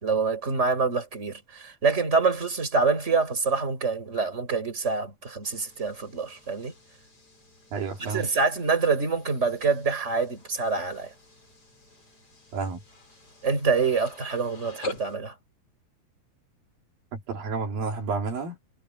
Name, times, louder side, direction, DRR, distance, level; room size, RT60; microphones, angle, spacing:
voice 1, 0.0-6.7 8.0-11.1 13.4-15.3, right 4 dB, 20° right, 5.1 m, -26 dB
sound 1, 5.4-15.2, left 1 dB, 40° left, 9.0 m, -45 dB
voice 2, 7.7-8.3 12.5-12.8 17.1-18.6, right 4 dB, 80° right, 5.0 m, -30 dB
omnidirectional pair, 4.0 m